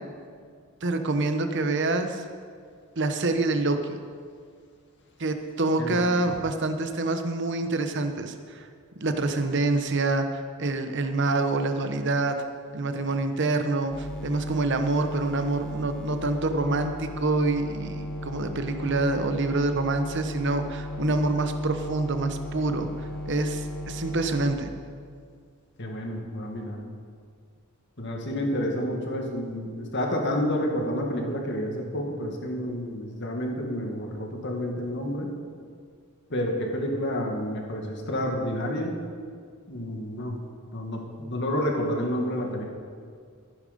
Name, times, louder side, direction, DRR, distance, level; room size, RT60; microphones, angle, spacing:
voice 1, 0.8-2.2 3.0-4.0 5.2-8.7 9.0-12.4 12.7-22.9 23.3-24.7, right 2 dB, 55° right, 7 dB, 1.0 m, -26 dB
voice 2, 5.8-6.1 25.8-26.8 28.0-35.3 36.3-39.0 39.7-40.4 40.7-42.6, equal, 55° left, 1 dB, 2.1 m, -29 dB
sound 1, 13.9-24.5, equal, 5° left, 1.1 m, -35 dB
14.5 x 10.5 x 5.3 m, 2.1 s
head